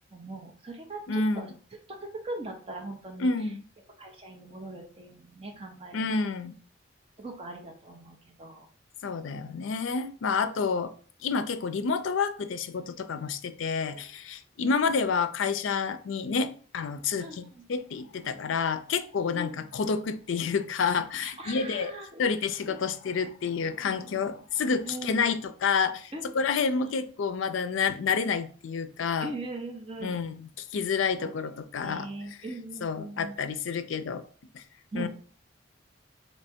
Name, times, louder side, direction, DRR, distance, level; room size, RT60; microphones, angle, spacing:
voice 1, 0.1-1.5 1.9-3.3 4.0-6.2 7.2-8.7 10.6-10.7 13.8-14.0 14.6-14.9 17.2-17.6 19.3-19.7 21.2-22.3 22.7-22.8 24.8-25.2 26.1-26.9 29.2-30.2 31.2-31.3 31.8-33.4 34.9-35.1, right 2 dB, 30° right, 0.7 m, -40 dB
voice 2, 1.1-1.5 3.2-3.6 5.9-6.6 9.0-10.9 11.2-17.4 17.7-21.9 22.2-29.3 30.0-32.1 32.8-34.2 34.5-34.6 34.9-35.1, left 5 dB, 75° left, 0.4 m, -29 dB
3.2 x 2.8 x 4.3 m
head